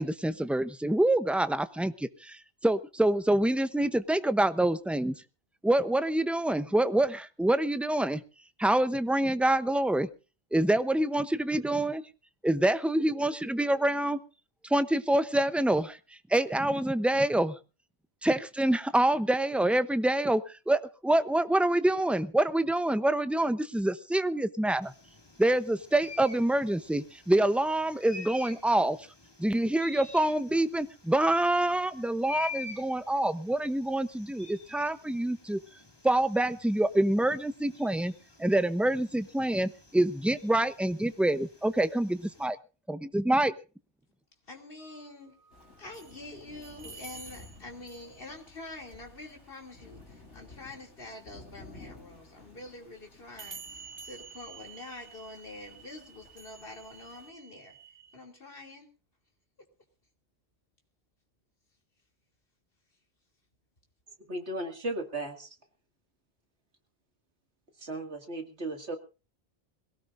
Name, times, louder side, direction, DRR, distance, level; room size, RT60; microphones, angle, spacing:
voice 1, 0.0-5.2 5.6-8.2 8.6-10.1 10.5-12.0 12.4-14.2 14.7-16.0 16.3-17.6 18.2-24.9 25.4-29.0 29.4-35.6 36.0-38.1 38.4-42.6 42.9-43.5, right 1 dB, ahead, 11 dB, 0.6 m, -26 dB
sound 1, 24.8-42.5, left 4 dB, 20° left, 2.2 m, -48 dB
voice 2, 44.4-45.4 45.8-57.8 58.1-58.9, left 2 dB, 55° left, 1 dB, 3.1 m, -46 dB
sound 2, 44.8-46.2 46.6-48.3 52.0-52.1 53.4-58.2, right 5 dB, 50° right, 2.2 m, -49 dB
Thunder / Rain, 45.5-57.3, left 3 dB, 85° left, 3.5 m, -54 dB
voice 3, 64.3-65.5 67.8-69.0, right 2 dB, 75° right, 5 dB, 2.5 m, -35 dB
22.0 x 17.5 x 2.6 m, 0.33 s
omnidirectional pair, 1.1 m